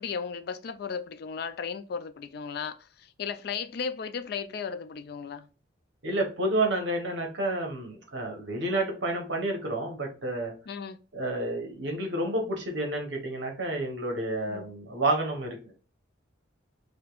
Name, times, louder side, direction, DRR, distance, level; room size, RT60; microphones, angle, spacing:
voice 1, 0.0-5.5 10.7-11.0 14.5-14.7, left 6 dB, 55° left, 0.3 m, -35 dB
voice 2, 6.0-10.5 11.1-15.7, right 2 dB, 65° right, 1.0 m, -30 dB
5.1 x 2.2 x 2.3 m
head